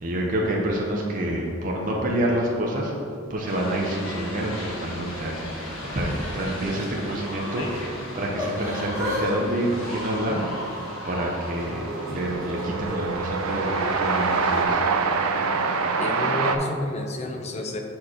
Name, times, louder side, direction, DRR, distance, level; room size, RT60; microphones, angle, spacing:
voice 1, 0.0-2.9 3.3-5.5 5.9-10.7 11.0-14.9, right 1 dB, 40° right, -2 dB, 0.7 m, -27 dB
sound 1, 3.4-14.6, left 1 dB, 75° left, 1.2 m, -37 dB
Yell / Crying sobbing, 6.6-7.7 8.3-9.2 9.5-10.9 11.4-13.0 13.7-13.9, equal, 15° right, 1.3 m, -35 dB
Train, 9.1-9.2 9.4-16.6, right 4 dB, 85° right, 0.5 m, -26 dB
voice 2, 16.0-17.8, left 1 dB, 30° left, 3 dB, 0.5 m, -30 dB
6.0 x 4.4 x 4.9 m, 2.4 s
head